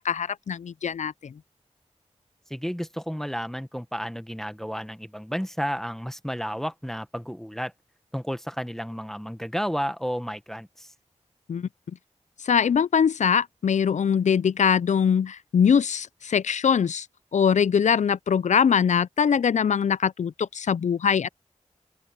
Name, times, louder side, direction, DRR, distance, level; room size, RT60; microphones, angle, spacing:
voice 1, 0.0-1.3 11.5-11.7 12.4-17.1 17.3-21.3, left 7 dB, 75° left, 0.4 m, -22 dB
voice 2, 2.5-7.7 8.1-10.9, equal, 5° left, 1.2 m, -32 dB
open air
wide cardioid pair, 60°, 13 cm